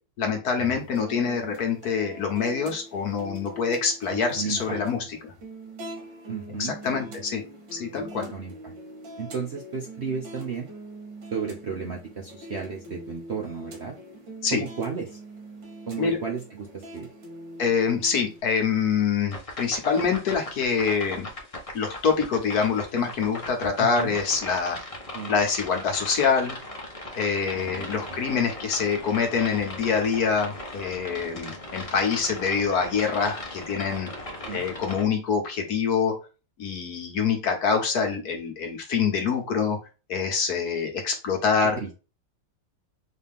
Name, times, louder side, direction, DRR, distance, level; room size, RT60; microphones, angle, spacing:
voice 1, 0.2-5.0 5.2-5.3 6.6-7.4 7.7-8.3 14.4-14.6 16.0-16.2 17.6-21.3 21.7-24.8 25.3-26.6 27.2-34.1 34.5-36.2 36.6-39.8 40.1-41.8, left 6 dB, 60° left, 4 dB, 1.4 m, -25 dB
sound 1, 0.6-18.4, right 1 dB, 85° right, 2.0 m, -43 dB
voice 2, 4.1-4.8 6.3-6.7 8.2-8.7 9.2-10.7 11.3-14.0 14.5-15.2 15.9-17.1 23.8-24.2 25.1-25.3 27.5-28.2 34.4-34.6 41.8-41.9, right 5 dB, 55° right, 1 dB, 0.7 m, -34 dB
sound 2, 19.3-35.1, left 1 dB, 30° left, 0.7 m, -38 dB
4.1 x 2.8 x 3.5 m, 0.31 s
omnidirectional pair, 2.0 m